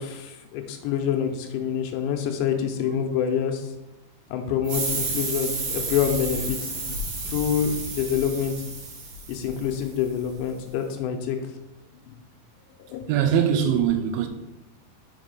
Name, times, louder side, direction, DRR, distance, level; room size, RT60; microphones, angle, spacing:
voice 1, 0.0-3.7 4.3-7.0 7.3-8.5 9.3-11.4 12.1-12.2 12.9-13.1, left 8 dB, 85° left, 2.9 m, -26 dB
sound 1, 4.6-10.0, right 3 dB, 60° right, 3.6 m, -31 dB
voice 2, 13.1-14.3, right 8 dB, 90° right, 3.1 m, -21 dB
7.0 x 4.0 x 5.3 m
omnidirectional pair, 5.2 m